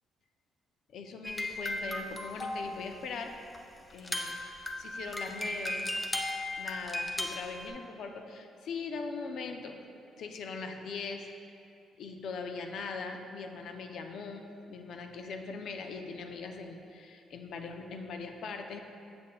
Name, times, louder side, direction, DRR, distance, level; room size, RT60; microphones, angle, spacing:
voice 1, 0.9-3.3 3.9-5.9 6.6-9.8 10.2-11.3 12.0-18.8, left 4 dB, 70° left, 5 dB, 0.5 m, -41 dB
sound 1, 1.2-3.0 3.5-3.6 3.9-7.7, left 1 dB, 15° left, 0.5 m, -36 dB
6.8 x 6.5 x 2.2 m, 2.6 s
cardioid pair, 90°, 0 cm